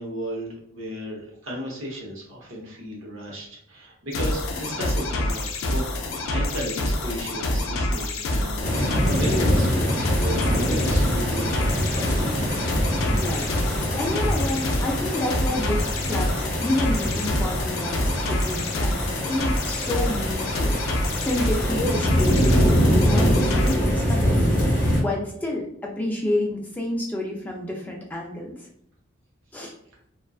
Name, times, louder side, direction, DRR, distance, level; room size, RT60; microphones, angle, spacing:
voice 1, 0.0-8.8 9.0-12.4, equal, 80° right, -2 dB, 0.8 m, -34 dB
sound 1, 4.1-23.8, left 1 dB, 80° left, 0.4 m, -27 dB
sound 2, 8.6-25.0, equal, 40° left, 0.7 m, -24 dB
voice 2, 13.1-28.7 29.5-29.7, left 1 dB, 10° left, -1 dB, 0.3 m, -30 dB
2.3 x 2.3 x 2.3 m, 0.71 s
head